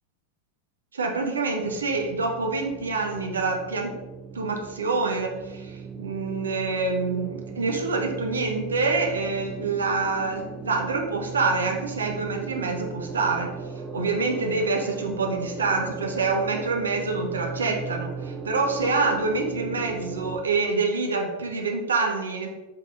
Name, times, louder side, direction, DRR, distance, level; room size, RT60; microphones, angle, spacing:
voice 1, 0.9-4.0 4.3-13.5 13.9-22.5, right 3 dB, 70° right, 3 dB, 1.4 m, -26 dB
sound 1, 1.6-20.4, right 5 dB, 20° right, 0.8 m, -38 dB
8.4 x 5.5 x 4.1 m, 1.1 s
figure-of-eight pair, 90°, 0 cm